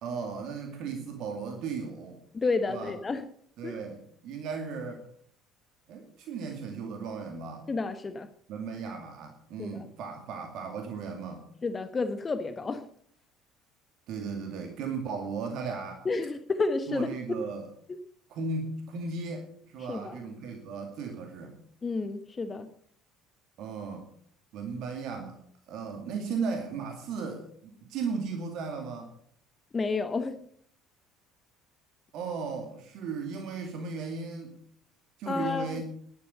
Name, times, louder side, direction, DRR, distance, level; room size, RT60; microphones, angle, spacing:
voice 1, 0.0-2.2 2.7-2.9 3.6-5.1 5.9-7.7 8.5-11.5 14.1-16.1 16.9-17.7 18.3-21.5 23.6-24.1 24.5-25.4 25.7-29.1 32.1-34.6 35.2-35.8, right 4 dB, 50° right, 4 dB, 2.3 m, -36 dB
voice 2, 2.3-3.2 3.6-3.8 7.7-8.3 9.6-9.9 11.6-12.9 16.0-17.4 19.9-20.2 21.8-22.7 29.7-30.4 35.3-35.8, left 3 dB, 25° left, 11 dB, 1.1 m, -31 dB
12.0 x 11.5 x 6.8 m, 0.62 s
figure-of-eight pair, 60°, 0 cm